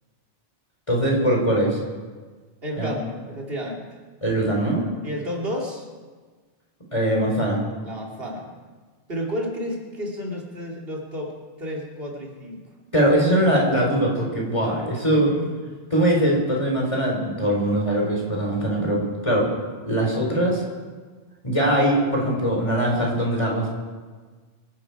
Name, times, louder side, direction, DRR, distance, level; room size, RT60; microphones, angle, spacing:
voice 1, 0.9-1.8 2.8-2.9 4.2-4.8 6.9-7.6 12.9-15.3 15.9-19.5 19.8-20.6 21.4-23.7, right 1 dB, 30° left, -2 dB, 4.0 m, -21 dB
voice 2, 2.6-3.9 5.0-5.9 7.8-8.5 9.1-12.6 15.1-15.5, equal, 70° right, -1 dB, 2.9 m, -31 dB
24.5 x 11.0 x 4.8 m, 1.4 s
omnidirectional pair, 1.0 m